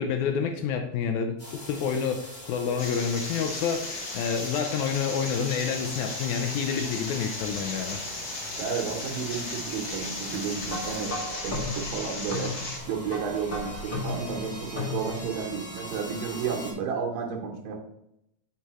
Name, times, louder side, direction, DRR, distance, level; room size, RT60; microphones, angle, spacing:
voice 1, 0.0-8.0, left 7 dB, 85° left, 4 dB, 1.6 m, -28 dB
sound 1, 1.4-16.7, equal, 20° left, 1.3 m, -43 dB
sound 2, 2.8-12.8, left 2 dB, 65° left, 1.0 m, -36 dB
voice 2, 8.6-12.6 12.9-17.8, right 6 dB, 80° right, 1 dB, 2.5 m, -32 dB
sound 3, 10.6-15.4, left 3 dB, 45° left, 1.3 m, -35 dB
8.2 x 4.6 x 3.0 m, 0.80 s
omnidirectional pair, 4.0 m